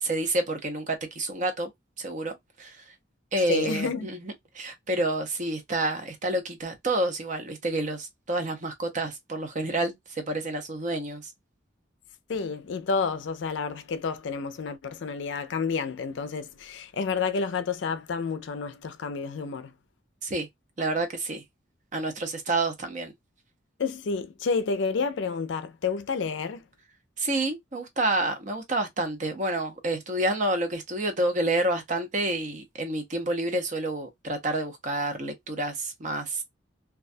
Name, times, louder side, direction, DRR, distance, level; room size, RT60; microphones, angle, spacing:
voice 1, 0.0-1.7 2.0-2.8 3.3-11.2 20.2-20.5 20.8-21.4 21.9-23.1 27.2-36.4, right 2 dB, 40° right, 0.6 m, -29 dB
voice 2, 3.5-4.1 12.3-19.7 23.8-26.7, left 5 dB, 65° left, 0.4 m, -30 dB
2.3 x 2.2 x 2.5 m
head